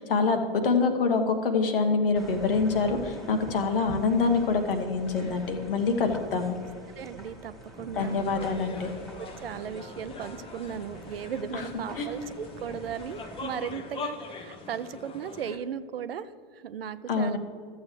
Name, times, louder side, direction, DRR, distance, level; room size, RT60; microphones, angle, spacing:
voice 1, 0.0-6.6 7.9-8.9 11.5-11.6 12.0-12.1 17.1-17.4, left 4 dB, 70° left, 6 dB, 1.3 m, -25 dB
sound 1, 2.2-13.5, equal, ahead, 2.0 m, -45 dB
voice 2, 7.0-8.2 9.2-17.4, right 8 dB, 80° right, 14 dB, 0.6 m, -36 dB
sound 2, 8.0-15.6, left 4 dB, 20° left, 0.8 m, -42 dB
13.5 x 8.0 x 3.2 m, 2.3 s
hypercardioid pair, 105°, 29 cm